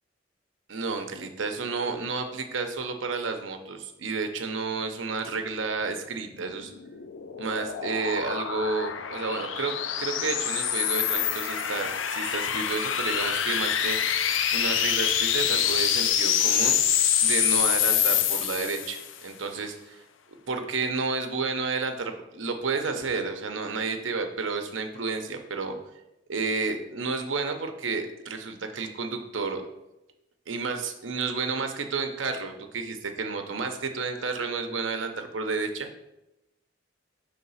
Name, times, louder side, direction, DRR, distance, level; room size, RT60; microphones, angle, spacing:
voice 1, 0.7-6.7 7.4-14.0 14.5-16.8 17.2-20.0 20.5-25.7 26.3-29.6 30.5-35.9, right 4 dB, 90° right, 6 dB, 0.8 m, -31 dB
sound 1, 6.5-19.1, left 9 dB, 85° left, 0.5 m, -26 dB
5.8 x 3.5 x 5.5 m, 0.93 s
head